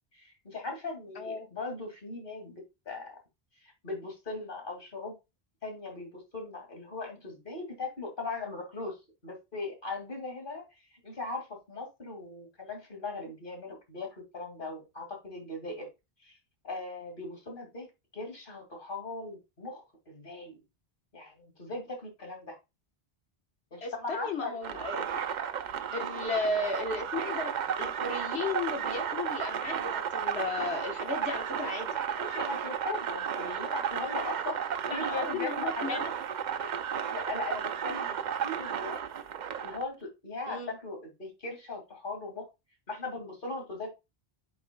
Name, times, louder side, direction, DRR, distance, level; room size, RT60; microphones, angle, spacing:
voice 1, 0.1-3.2 3.6-5.1 5.6-9.0 9.2-15.9 16.2-16.4 16.6-17.9 18.1-20.6 21.1-22.6 23.7-24.6 25.9-26.1 32.1-36.0 36.6-39.0 39.6-42.5 42.9-43.9, left 3 dB, 55° left, 2 dB, 2.5 m, -39 dB
voice 2, 1.2-1.5 23.8-25.2 25.9-31.9 34.8-36.1 40.5-40.7, left 3 dB, 90° left, 4 dB, 1.6 m, -35 dB
sound 1, 24.6-39.8, right 8 dB, 55° right, 0.6 m, -33 dB
8.3 x 5.3 x 2.2 m, 0.24 s
omnidirectional pair, 1.0 m